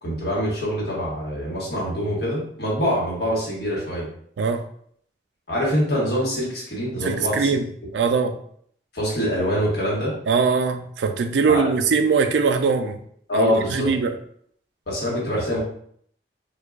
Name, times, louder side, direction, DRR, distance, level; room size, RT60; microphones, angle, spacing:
voice 1, 0.0-4.1 5.5-7.6 8.9-10.1 11.5-11.6 13.3-13.9 14.9-15.6, equal, 65° left, -5 dB, 1.4 m, -24 dB
voice 2, 7.0-7.6 7.9-8.3 10.3-13.0 13.3-14.2, right 5 dB, 85° right, 9 dB, 0.4 m, -21 dB
4.5 x 2.3 x 2.4 m, 0.64 s
head